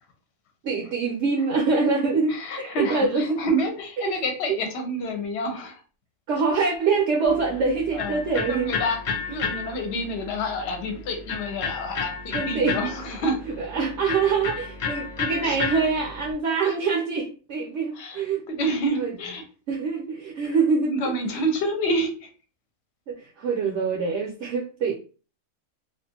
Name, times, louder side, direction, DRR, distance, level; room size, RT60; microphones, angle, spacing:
voice 1, 0.6-3.4 4.0-4.1 4.5-4.6 6.3-8.7 12.3-12.8 13.6-18.4 18.9-19.1 19.7-20.9 23.1-24.9, right 4 dB, 65° right, -1 dB, 0.8 m, -25 dB
voice 2, 2.3-5.8 7.9-8.2 8.5-13.4 15.4-15.6 16.6-16.8 17.9-19.4 20.8-22.3, equal, 60° left, 4 dB, 0.9 m, -28 dB
Electric guitar, 7.2-16.3, left 5 dB, 75° left, 0.4 m, -33 dB
2.4 x 2.4 x 2.7 m, 0.36 s
omnidirectional pair, 1.5 m